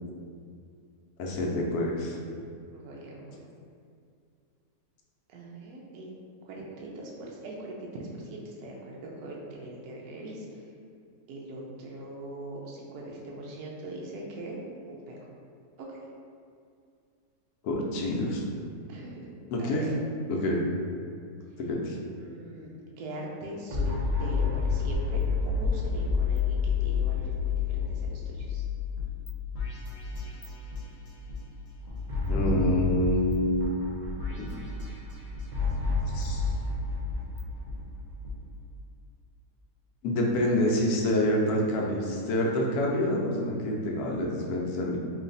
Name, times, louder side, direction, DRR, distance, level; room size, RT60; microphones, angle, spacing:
voice 1, 1.2-2.2 17.6-18.4 19.5-19.9 20.3-20.6 21.6-22.0 32.3-33.8 34.3-34.5 36.1-36.5 40.0-45.0, left 1 dB, 75° left, -1 dB, 1.1 m, -27 dB
voice 2, 2.7-3.4 5.3-6.1 6.5-10.6 11.3-14.6 14.9-15.3 15.8-16.1 18.9-19.3 19.6-19.9 22.2-28.6, right 1 dB, 75° right, -2 dB, 1.1 m, -41 dB
sound 1, 23.7-30.0 30.4-30.5 32.1-34.6 35.5-38.3, left 5 dB, 40° right, 0.7 m, -29 dB
sound 2, 24.9-26.4 26.6-26.8 27.2-28.5 29.0-29.3 29.5-31.4 31.9-33.3 33.6-33.7 34.2-35.5 35.9-37.8 38.2-38.3, left 2 dB, 45° left, 0.5 m, -39 dB
3.2 x 2.6 x 3.8 m, 2.3 s
omnidirectional pair, 1.7 m